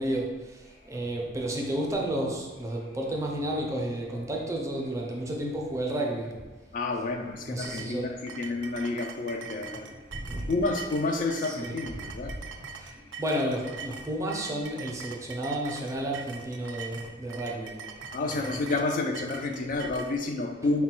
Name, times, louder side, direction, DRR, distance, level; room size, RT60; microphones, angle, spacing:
voice 1, 0.0-6.4 7.4-8.1 10.1-10.5 11.4-11.8 12.3-12.5 12.7-18.0 18.3-18.7, right 1 dB, 15° right, -1 dB, 0.5 m, -32 dB
sound 1, 0.6-20.2, equal, 75° left, 0.7 m, -53 dB
voice 2, 6.7-9.9 10.5-12.3 18.1-20.8, left 2 dB, 45° left, 3 dB, 0.3 m, -29 dB
sound 2, 7.6-20.1, right 5 dB, 80° right, 0.4 m, -43 dB
4.0 x 2.2 x 4.3 m, 1.2 s
head